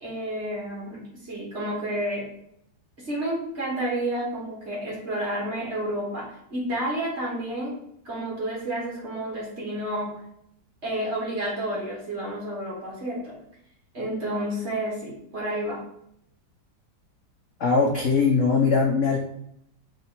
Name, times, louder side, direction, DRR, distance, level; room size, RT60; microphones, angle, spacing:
voice 1, 0.0-2.3 3.0-7.8 8.0-10.2 10.8-13.4 13.9-15.8, right 1 dB, 40° right, -4 dB, 1.5 m, -30 dB
voice 2, 17.6-19.2, left 4 dB, 65° left, -1 dB, 0.7 m, -21 dB
4.0 x 3.0 x 4.2 m, 0.73 s
omnidirectional pair, 2.0 m